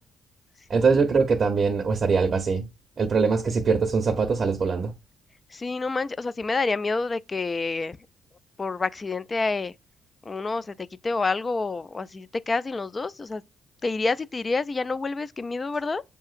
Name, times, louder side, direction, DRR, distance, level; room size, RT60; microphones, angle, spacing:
voice 1, 0.7-2.6 3.0-4.9, right 5 dB, 45° right, 0.6 m, -22 dB
voice 2, 5.5-8.0 8.6-9.7 10.3-13.4 13.8-16.0, left 3 dB, 30° left, 0.3 m, -28 dB
7.0 x 2.8 x 2.4 m
cardioid pair, 90°, 0 cm